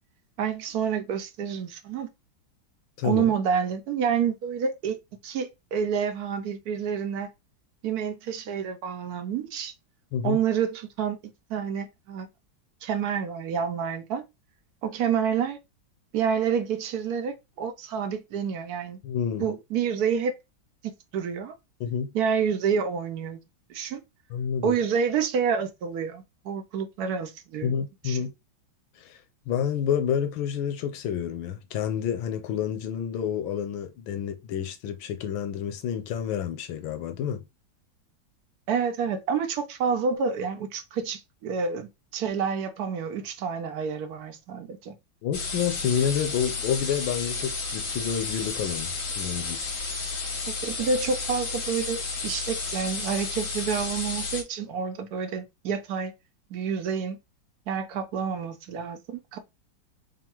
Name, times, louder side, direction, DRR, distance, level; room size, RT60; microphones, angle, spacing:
voice 1, 0.4-2.1 3.0-5.0 5.2-7.3 7.8-9.7 10.2-12.3 12.8-14.2 14.8-15.6 16.1-19.0 19.4-20.3 20.8-21.5 22.1-23.4 23.7-24.0 24.6-27.7 28.0-28.2 38.7-44.9 50.6-56.1 56.5-57.2 57.7-59.4, right 7 dB, 65° right, 1.0 m, -28 dB
voice 2, 3.0-3.3 10.1-10.4 19.0-19.5 21.8-22.1 24.3-24.7 27.6-28.3 29.0-29.2 29.5-37.4 45.2-49.7, left 8 dB, 90° left, 1.5 m, -29 dB
sound 1, 45.3-54.4, left 4 dB, 45° left, 1.4 m, -32 dB
3.6 x 2.3 x 4.5 m
omnidirectional pair, 2.1 m